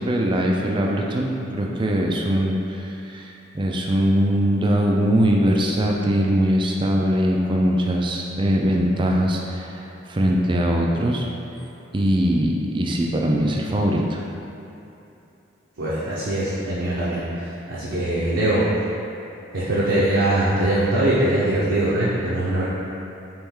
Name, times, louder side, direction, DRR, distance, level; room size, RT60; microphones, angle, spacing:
voice 1, 0.0-11.2 11.9-14.2, equal, 25° right, 0 dB, 0.4 m, -21 dB
voice 2, 15.8-18.6 19.5-22.6, right 1 dB, 70° right, -9 dB, 0.7 m, -22 dB
4.5 x 3.1 x 3.6 m, 2.8 s
head